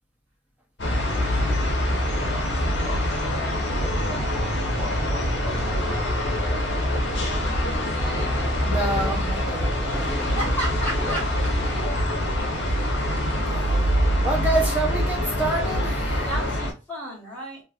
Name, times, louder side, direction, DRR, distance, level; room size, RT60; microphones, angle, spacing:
sound 1, 0.8-16.7, equal, 65° left, 0.9 m, -24 dB
voice 1, 2.8-4.1 4.8-6.1 6.9-7.5 11.0-11.2, left 2 dB, 70° right, 1.3 m, -39 dB
voice 2, 8.7-10.5 13.5-13.6 14.2-16.3, right 2 dB, 10° right, 0.6 m, -28 dB
voice 3, 10.4-11.2 16.2-17.6, right 1 dB, 10° left, 1.8 m, -31 dB
3.2 x 2.6 x 2.4 m
head